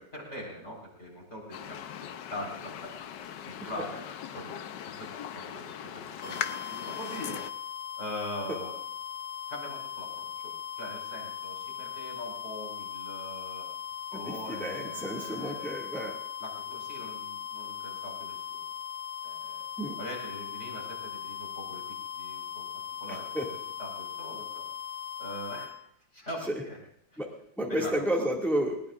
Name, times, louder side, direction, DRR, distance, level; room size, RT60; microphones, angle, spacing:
voice 1, 0.1-2.9 3.4-4.0 4.3-4.6 4.9-6.4 6.7-7.4 8.0-8.7 9.5-13.7 14.1-15.7 16.4-18.7 19.2-19.7 20.0-22.7 23.0-24.7 25.2-26.8 27.1-27.2 27.7-28.3, equal, 35° left, -3 dB, 5.1 m, -42 dB
sound 1, 1.5-7.5, left 9 dB, 70° left, 1.4 m, -40 dB
sound 2, 6.2-25.7, left 8 dB, 85° left, 3.5 m, -39 dB
voice 2, 14.1-16.2 19.8-20.0 23.3-23.5 27.2-27.3 27.6-28.8, equal, ahead, -1 dB, 2.0 m, -31 dB
20.5 x 19.5 x 2.5 m, 0.70 s
omnidirectional pair, 2.0 m